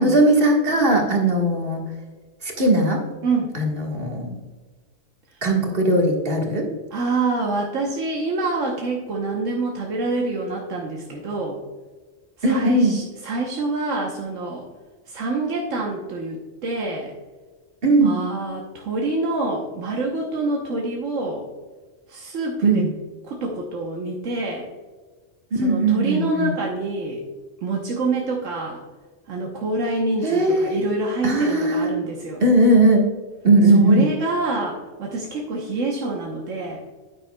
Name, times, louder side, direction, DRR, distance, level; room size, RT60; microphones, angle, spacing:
voice 1, 0.0-1.9 2.4-3.0 3.5-4.4 5.4-6.7 12.4-12.9 17.8-18.2 22.6-22.9 25.6-26.5 30.2-30.8 31.2-31.9 32.4-33.1 33.4-34.0, right 1 dB, 50° right, 0 dB, 1.7 m, -18 dB
voice 2, 3.2-3.5 5.3-5.4 6.9-11.6 12.4-14.7 15.1-17.1 18.0-21.5 22.1-22.9 23.2-24.7 25.6-27.2 27.6-28.8 29.3-32.4 33.6-36.8, right 3 dB, 85° right, -1 dB, 1.3 m, -26 dB
9.3 x 9.0 x 2.2 m, 1.4 s
omnidirectional pair, 1.3 m